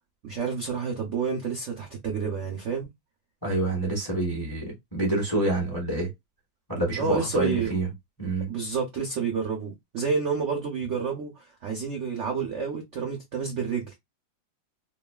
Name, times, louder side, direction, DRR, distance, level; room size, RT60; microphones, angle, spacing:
voice 1, 0.2-2.9 6.9-7.7 8.5-13.9, right 5 dB, 65° right, 0.7 m, -29 dB
voice 2, 3.4-6.1 6.7-7.9 8.2-8.5, right 2 dB, 15° left, 0.8 m, -27 dB
3.0 x 2.4 x 2.2 m
omnidirectional pair, 2.1 m